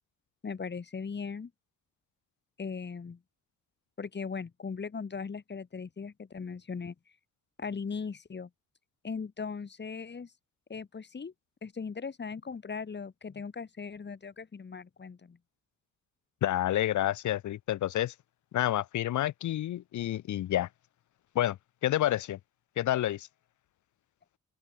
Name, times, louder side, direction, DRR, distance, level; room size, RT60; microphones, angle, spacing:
voice 1, 0.4-1.5 2.6-3.2 4.0-6.9 7.6-8.5 9.0-10.3 10.7-11.3 11.6-15.4, left 5 dB, 35° left, 5.7 m, -38 dB
voice 2, 16.4-18.1 18.5-20.7 21.4-22.4 22.8-23.3, left 13 dB, 75° left, 2.0 m, -29 dB
open air
cardioid pair, 90°, 30 cm